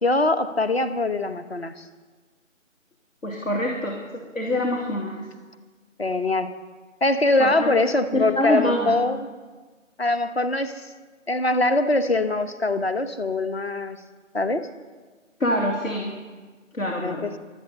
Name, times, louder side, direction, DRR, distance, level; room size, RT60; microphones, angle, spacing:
voice 1, 0.0-1.8 6.0-6.5 7.0-9.3 10.0-10.9 11.3-14.0 14.3-14.7 17.0-17.3, left 2 dB, 50° left, 10 dB, 1.1 m, -23 dB
voice 2, 3.2-5.2 7.4-7.7 8.1-9.0 15.4-16.1 16.7-17.3, left 1 dB, 90° left, -1 dB, 3.0 m, -25 dB
15.0 x 12.5 x 7.0 m, 1.4 s
figure-of-eight pair, 175°, 39 cm